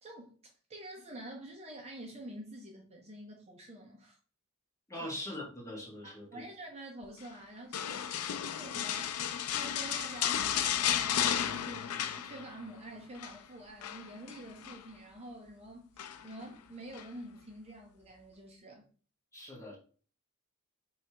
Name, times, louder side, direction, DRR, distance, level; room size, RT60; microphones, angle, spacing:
voice 1, 0.0-4.2 5.0-5.1 6.0-8.1 8.5-9.2 9.5-18.9, right 1 dB, 30° right, 0.6 m, -48 dB
voice 2, 4.9-6.4 19.3-19.8, left 1 dB, 15° left, 1.5 m, -42 dB
sound 1, 7.7-12.7 13.0-13.4 13.8-14.8 16.0-16.4 16.9-17.1, left 9 dB, 80° left, 0.4 m, -33 dB
4.6 x 3.3 x 2.9 m
head